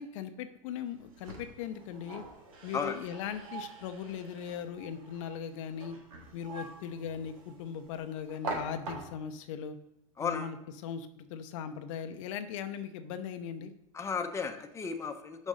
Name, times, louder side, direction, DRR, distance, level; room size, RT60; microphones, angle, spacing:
voice 1, 0.0-2.2 2.6-6.0 6.3-9.8 10.2-13.7, left 8 dB, 65° left, 8 dB, 0.7 m, -39 dB
sound 1, 0.9-9.4, right 3 dB, 80° right, 2.2 m, -45 dB
voice 2, 10.2-10.5 13.9-15.5, left 5 dB, 15° left, 5 dB, 0.8 m, -34 dB
6.3 x 5.2 x 5.1 m, 0.83 s
hypercardioid pair, 110°, 17 cm